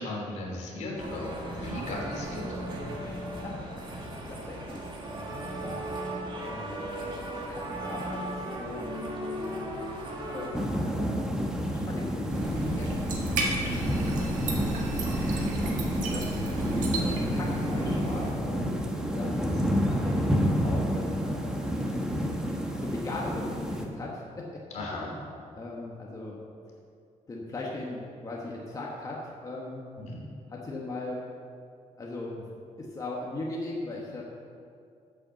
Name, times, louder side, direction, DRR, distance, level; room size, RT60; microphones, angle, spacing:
voice 1, 0.0-2.6 13.6-14.0 24.7-25.1 30.0-30.3, left 1 dB, 65° left, -2 dB, 2.8 m, -36 dB
sound 1, 1.0-10.5, right 1 dB, 40° right, 2.1 m, -36 dB
voice 2, 3.0-3.6 4.3-5.3 5.6-5.8 6.4-6.8 7.5-9.0 10.3-11.3 11.9-13.1 14.3-14.7 16.1-22.1 22.8-24.9 25.5-26.4 27.3-29.9 30.5-31.2 32.0-32.5 32.8-34.2, left 2 dB, 25° left, -3 dB, 1.3 m, -39 dB
sound 2, 10.5-23.9, equal, 5° right, 1.2 m, -29 dB
sound 3, 12.3-18.3, right 2 dB, 85° right, 1.7 m, -34 dB
8.4 x 7.7 x 7.0 m, 2.4 s
cardioid pair, 125°, 13 cm